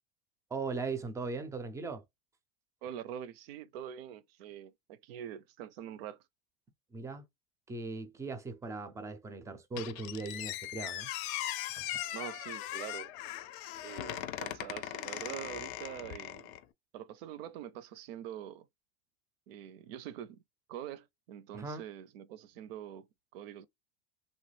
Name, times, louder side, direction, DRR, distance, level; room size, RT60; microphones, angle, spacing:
voice 1, 0.5-2.0 6.9-7.3 7.7-11.1 11.8-11.9 21.5-21.8, right 3 dB, 10° right, 0.4 m, -39 dB
voice 2, 2.8-6.2 12.1-13.1 13.8-16.5 16.9-18.7 19.5-20.4 20.7-23.1 23.3-23.7, right 10 dB, 70° right, 0.6 m, -44 dB
Squeak, 9.8-16.6, left 13 dB, 55° left, 0.5 m, -39 dB
3.1 x 2.2 x 3.2 m
supercardioid pair, 125°, 31 cm